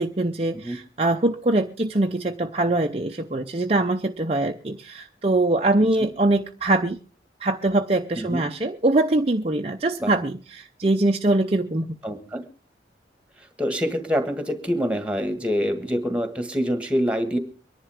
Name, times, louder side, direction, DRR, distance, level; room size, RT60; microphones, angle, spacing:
voice 1, 0.0-7.0 7.4-12.0, right 2 dB, 30° right, 4 dB, 0.6 m, -23 dB
voice 2, 12.0-12.4 13.6-17.4, equal, 5° right, 8 dB, 1.6 m, -25 dB
24.0 x 11.0 x 3.5 m, 0.36 s
head